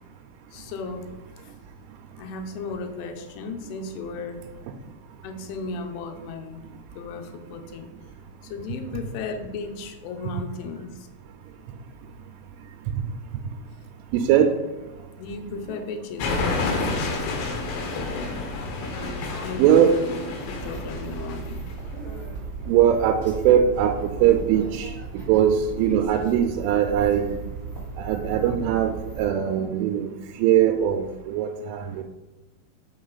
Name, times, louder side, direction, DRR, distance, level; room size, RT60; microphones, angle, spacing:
voice 1, 0.5-1.1 1.4-1.5 2.2-4.4 5.2-6.7 7.0-7.9 8.4-11.1 15.2-17.1 19.4-20.2 20.5-21.7 22.1-22.2, left 4 dB, 85° left, 5 dB, 3.2 m, -35 dB
voice 2, 14.1-14.5 19.6-20.0 22.7-27.4 28.0-30.1 30.4-32.0, right 9 dB, 85° right, 3 dB, 3.0 m, -21 dB
sound 1, 16.2-21.7, left 3 dB, 70° left, 2.7 m, -29 dB
sound 2, 20.4-29.2, right 4 dB, 45° right, 0.6 m, -36 dB
6.2 x 5.8 x 3.9 m, 1.1 s
omnidirectional pair, 5.6 m